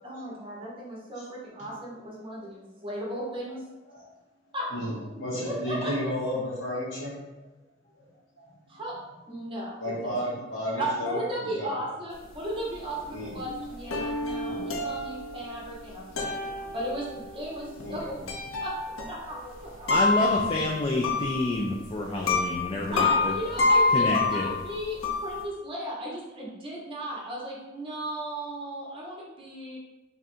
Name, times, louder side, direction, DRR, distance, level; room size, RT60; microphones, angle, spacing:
voice 1, 0.0-3.6 4.5-4.7 5.4-5.9 8.7-8.9 9.3-9.8 10.8-18.2 18.6-18.7 19.1-19.4 19.6-20.2 22.9-29.8, right 1 dB, 25° right, -5 dB, 1.0 m, -35 dB
voice 2, 4.7-7.4 7.9-8.0 8.4-8.8 9.8-11.7 13.1-13.4 14.1-15.0 15.5-15.6 16.3-16.5 17.8-18.3 19.2-19.7, equal, 65° left, -6 dB, 1.4 m, -34 dB
sound 1, 12.3-12.4 12.7-12.8 13.0-21.8 22.2-25.4, left 3 dB, 90° left, 0.6 m, -28 dB
voice 3, 19.9-23.3 23.9-24.5, left 1 dB, 25° left, -1 dB, 0.3 m, -28 dB
3.5 x 2.5 x 4.2 m, 1.0 s
head